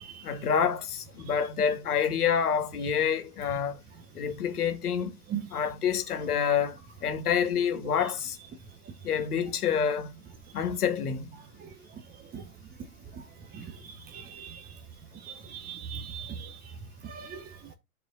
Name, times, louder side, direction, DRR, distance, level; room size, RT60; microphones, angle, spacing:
voice 1, 0.2-3.8 4.1-5.1 5.5-8.4 9.0-10.1 10.5-11.3, left 7 dB, 85° left, 1.6 m, -27 dB
voice 2, 14.1-14.6 15.3-16.5 17.0-17.4, right 8 dB, 20° right, 0.9 m, -38 dB
12.5 x 4.6 x 2.4 m
hypercardioid pair, 115°, 44 cm